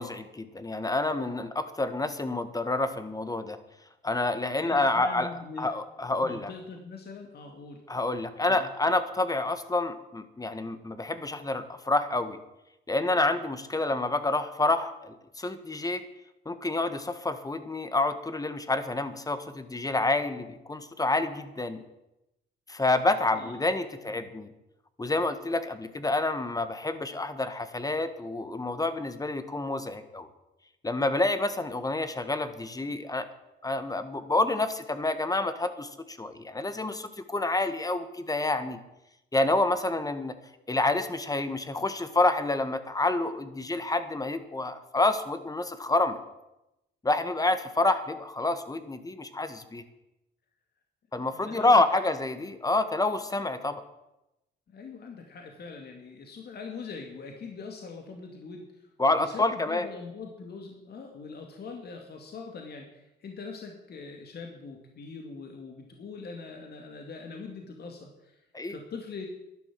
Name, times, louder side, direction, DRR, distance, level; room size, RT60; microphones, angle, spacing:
voice 1, 0.0-3.6 4.0-5.3 5.6-6.5 7.9-12.4 12.9-16.0 16.4-21.8 22.7-24.5 25.0-30.3 30.8-33.2 33.6-38.8 39.3-40.3 40.7-46.2 47.0-49.8 51.1-53.8 59.0-59.9 68.5-68.8, left 2 dB, 20° left, 11 dB, 1.5 m, -28 dB
voice 2, 4.6-5.7 6.2-7.8 8.4-8.7 23.3-23.5 24.0-24.3 51.3-52.1 54.7-68.4 68.7-69.3, left 4 dB, 55° left, 2 dB, 2.4 m, -42 dB
12.0 x 11.0 x 7.6 m, 0.92 s
cardioid pair, 90°, 20 cm